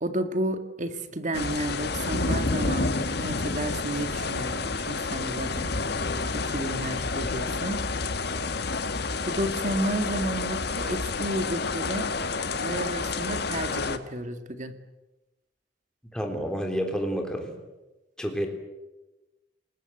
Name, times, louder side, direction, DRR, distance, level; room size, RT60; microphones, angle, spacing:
voice 1, 0.0-5.7 6.3-7.8 9.2-12.1 12.5-14.7, right 1 dB, 45° right, 8 dB, 2.1 m, -32 dB
sound 1, 1.3-14.0, left 3 dB, 65° left, 1.6 m, -29 dB
voice 2, 16.1-17.5 18.2-18.5, equal, 5° left, 3 dB, 3.6 m, -29 dB
29.0 x 20.0 x 8.0 m, 1.1 s
head